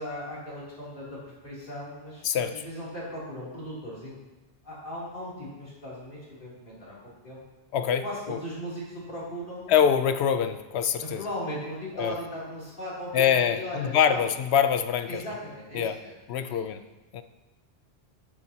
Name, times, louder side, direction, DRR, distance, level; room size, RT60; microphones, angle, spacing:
voice 1, 0.0-4.2 4.6-7.0 7.2-7.4 8.0-9.7 11.0-14.2 15.1-16.1 16.5-16.6, equal, 55° left, -8 dB, 3.2 m, -38 dB
voice 2, 2.2-2.6 7.7-8.0 8.3-8.4 9.7-11.2 12.0-12.1 13.1-15.2 15.7-16.0 16.3-16.8 17.1-17.2, left 8 dB, 85° left, 10 dB, 0.9 m, -24 dB
14.0 x 7.6 x 2.8 m, 1.1 s
omnidirectional pair, 1.1 m